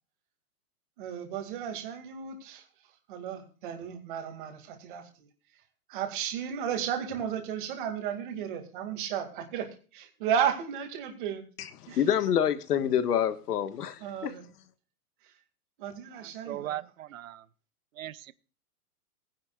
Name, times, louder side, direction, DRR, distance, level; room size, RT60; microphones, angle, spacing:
voice 1, 1.0-2.6 3.1-5.3 5.9-11.4 11.9-12.0 14.0-14.4 15.8-16.8, right 8 dB, 35° right, 2.3 m, -34 dB
voice 2, 11.6-14.3, left 9 dB, 85° left, 1.6 m, -27 dB
voice 3, 16.1-17.5 17.9-18.3, right 13 dB, 60° right, 0.9 m, -39 dB
18.5 x 10.5 x 2.4 m
supercardioid pair, 175°, 45 cm